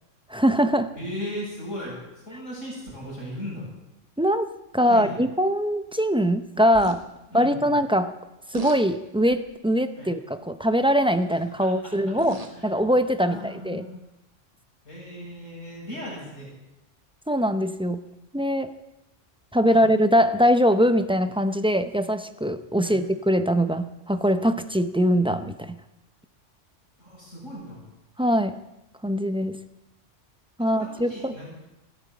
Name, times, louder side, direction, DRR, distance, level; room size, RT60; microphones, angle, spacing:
voice 1, 0.3-0.9 4.2-7.0 7.3-8.2 8.5-13.8 17.3-18.0 18.3-18.7 19.5-25.8 28.2-28.6 29.0-29.6 30.6-31.3, equal, 5° right, 9 dB, 0.4 m, -22 dB
voice 2, 0.9-3.6 4.8-5.2 7.3-7.7 9.9-10.1 11.3-11.9 12.5-12.7 13.2-14.0 14.8-16.5 19.7-19.9 22.8-23.0 27.0-27.8 30.6-31.5, equal, 85° left, -4 dB, 7.7 m, -37 dB
sound 1, 6.7-7.0 8.5-8.8 9.3-9.6 11.0-11.3 12.0-12.6 13.6-13.7, right 2 dB, 30° right, 1.6 m, -37 dB
14.5 x 12.0 x 8.5 m, 0.93 s
omnidirectional pair, 1.3 m